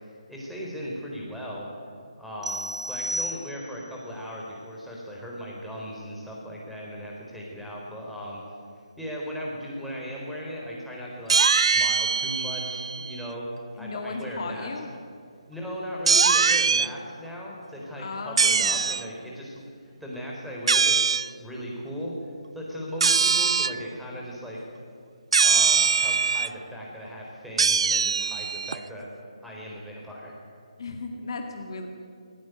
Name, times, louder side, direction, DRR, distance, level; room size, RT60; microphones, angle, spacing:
voice 1, 0.0-1.7 2.2-8.4 9.0-13.5 13.8-14.7 15.5-19.6 20.0-22.1 22.5-24.6 25.4-29.1 29.4-30.3, equal, ahead, -5 dB, 4.2 m, -37 dB
sound 1, 2.4-4.0, right 1 dB, 75° right, 1.3 m, -33 dB
sound 2, 11.3-13.3 16.1-16.9 18.4-19.0 20.7-21.3 23.0-23.8 25.3-26.5 27.6-28.8, right 5 dB, 60° right, 0.5 m, -22 dB
voice 2, 13.7-14.9 18.0-18.8 30.8-31.9, left 3 dB, 50° left, 4 dB, 2.2 m, -35 dB
19.0 x 17.5 x 9.2 m, 2.3 s
figure-of-eight pair, 150°, 3 cm